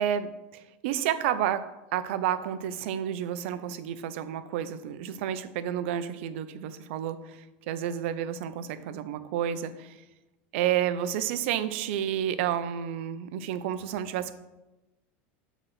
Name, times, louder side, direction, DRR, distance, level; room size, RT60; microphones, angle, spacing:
voice 1, 0.0-10.0 10.5-14.3, right 10 dB, 70° right, 11 dB, 0.6 m, -30 dB
7.5 x 4.0 x 5.8 m, 1.0 s
supercardioid pair, 135°, 7 cm